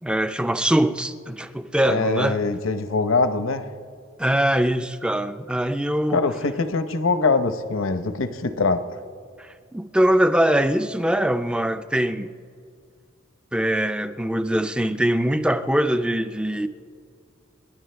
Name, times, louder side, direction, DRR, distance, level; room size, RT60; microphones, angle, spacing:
voice 1, 0.0-2.4 4.2-6.2 9.4-12.3 13.5-16.7, right 1 dB, 5° right, 0.4 m, -22 dB
voice 2, 1.9-3.7 6.1-8.9, left 3 dB, 70° left, 0.8 m, -23 dB
28.0 x 11.0 x 3.4 m
head